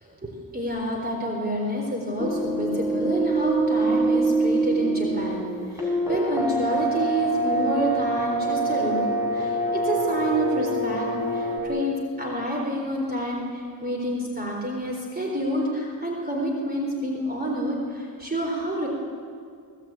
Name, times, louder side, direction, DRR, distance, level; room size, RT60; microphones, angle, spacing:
voice 1, 0.0-18.9, equal, 25° right, -1 dB, 4.0 m, -28 dB
sound 1, 2.2-11.6, right 2 dB, 10° right, 4.9 m, -25 dB
26.5 x 18.5 x 9.0 m, 2.3 s
wide cardioid pair, 125°, 38 cm